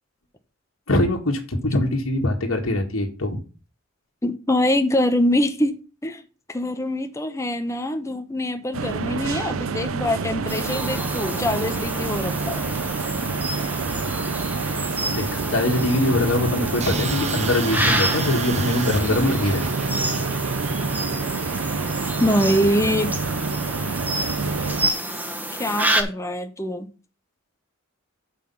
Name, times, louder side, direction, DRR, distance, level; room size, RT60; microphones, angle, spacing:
voice 1, 0.9-3.4 13.3-13.5 15.1-19.7, left 1 dB, 75° left, 1.6 m, -23 dB
voice 2, 4.2-6.2 6.5-12.6 22.2-23.1 25.5-26.9, left 1 dB, 15° left, 0.8 m, -24 dB
sound 1, 8.7-24.9, right 4 dB, 80° right, 0.6 m, -28 dB
sound 2, 10.5-26.0, right 1 dB, 10° right, 1.2 m, -29 dB
sound 3, 16.8-21.6, right 3 dB, 35° right, 0.8 m, -31 dB
6.7 x 5.7 x 5.6 m
head